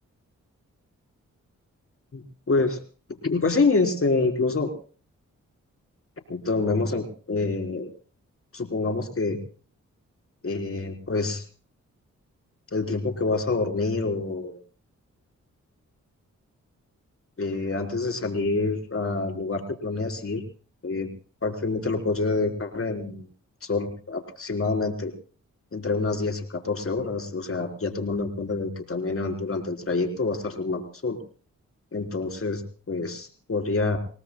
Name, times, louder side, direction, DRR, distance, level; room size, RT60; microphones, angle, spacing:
voice 1, 2.1-2.8 3.2-4.7 6.3-7.9 8.5-9.4 10.4-11.4 12.7-14.6 17.4-20.4 20.8-21.1 21.4-23.2 23.6-25.1 25.7-31.2 31.9-32.6 32.9-34.0, left 3 dB, 45° left, 4 dB, 4.1 m, -27 dB
29.0 x 18.0 x 2.3 m, 0.41 s
cardioid pair, 70°, 30 cm